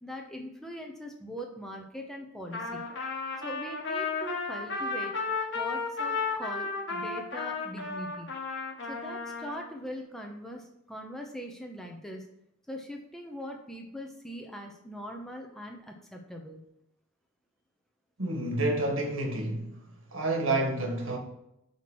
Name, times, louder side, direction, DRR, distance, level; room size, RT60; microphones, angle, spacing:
voice 1, 0.0-2.8 3.4-8.3 8.9-12.3 12.7-16.6, equal, ahead, 0.7 m, -41 dB
Trumpet, 2.5-9.6, left 4 dB, 60° left, 1.4 m, -33 dB
voice 2, 18.2-19.8 20.1-21.2, right 2 dB, 85° right, 1.6 m, -29 dB
5.8 x 4.5 x 6.1 m
head